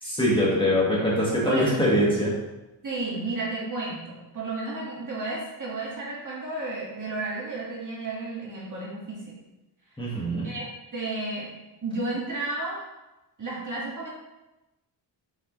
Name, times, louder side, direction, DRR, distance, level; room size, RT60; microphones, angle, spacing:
voice 1, 0.0-2.3 10.0-10.5, equal, 10° left, -7 dB, 1.9 m, -23 dB
voice 2, 1.5-1.8 2.8-9.3 10.4-10.7 10.9-11.5 11.8-12.8 13.4-14.1, right 2 dB, 40° right, -5 dB, 2.1 m, -32 dB
6.5 x 5.7 x 3.3 m, 1.0 s
wide cardioid pair, 130°, 45 cm